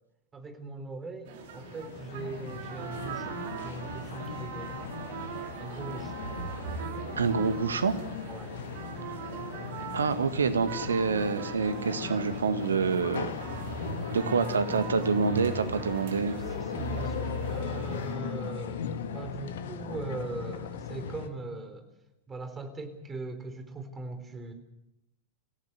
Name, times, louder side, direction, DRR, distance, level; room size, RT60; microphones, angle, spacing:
voice 1, 0.3-4.8 5.6-6.1 8.2-8.5 9.0-9.1 16.3-21.9 22.3-24.5, right 3 dB, 15° right, 8 dB, 3.9 m, -40 dB
sound 1, 1.3-18.2, right 6 dB, 55° right, 2.8 m, -40 dB
sound 2, 1.4-21.3, left 7 dB, 60° left, 1.7 m, -38 dB
voice 2, 7.2-8.0 9.9-13.3 14.1-16.4, right 5 dB, 70° right, 10 dB, 1.8 m, -27 dB
26.5 x 16.5 x 8.1 m, 0.90 s
figure-of-eight pair, 90°, 0 cm